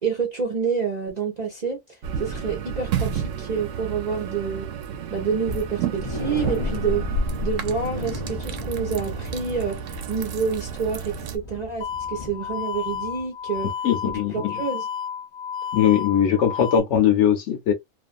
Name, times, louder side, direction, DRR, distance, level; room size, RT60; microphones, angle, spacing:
voice 1, 0.0-1.8 2.2-4.7 5.1-7.0 7.4-9.8 10.1-13.7 14.3-14.9, right 5 dB, 50° right, 0.5 m, -28 dB
sound 1, 2.0-11.4, right 5 dB, 70° right, 0.9 m, -30 dB
sound 2, 5.4-13.2 13.5-13.7 14.1-14.2, left 3 dB, 35° left, 0.5 m, -36 dB
sound 3, 11.8-16.8, left 7 dB, 90° left, 1.1 m, -32 dB
voice 2, 13.8-14.5 15.7-17.7, left 9 dB, 65° left, 0.8 m, -20 dB
2.4 x 2.4 x 2.4 m
omnidirectional pair, 1.5 m